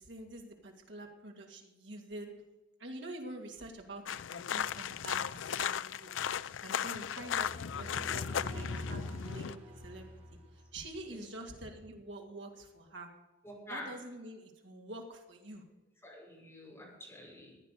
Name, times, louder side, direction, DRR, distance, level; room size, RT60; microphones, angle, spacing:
voice 1, 0.0-2.3 2.8-6.3 6.6-7.5 7.7-10.4 10.7-13.1 13.7-15.6, right 1 dB, 70° right, 2 dB, 2.6 m, -46 dB
sound 1, 4.1-9.5, left 8 dB, 85° left, 0.4 m, -36 dB
sound 2, 7.1-11.0, left 1 dB, 30° right, 5.1 m, -45 dB
voice 2, 13.4-13.9 16.0-17.5, left 1 dB, 10° left, -4 dB, 5.9 m, -47 dB
15.5 x 9.6 x 6.7 m, 1.0 s
head